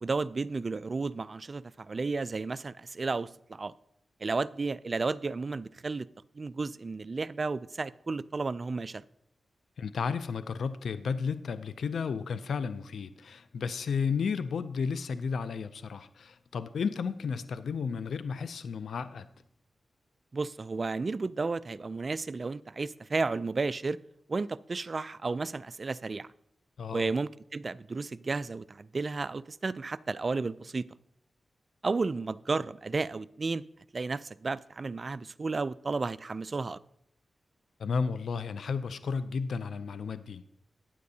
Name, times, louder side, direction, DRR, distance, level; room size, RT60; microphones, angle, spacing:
voice 1, 0.0-3.7 4.2-6.1 6.3-9.0 20.3-24.0 24.3-26.3 26.9-30.9 31.8-33.6 33.9-36.8, right 3 dB, 50° right, 0.3 m, -33 dB
voice 2, 9.8-19.3 26.8-27.1 37.8-40.4, left 5 dB, 80° left, 0.4 m, -33 dB
14.5 x 9.4 x 2.8 m
cardioid pair, 50°, 0 cm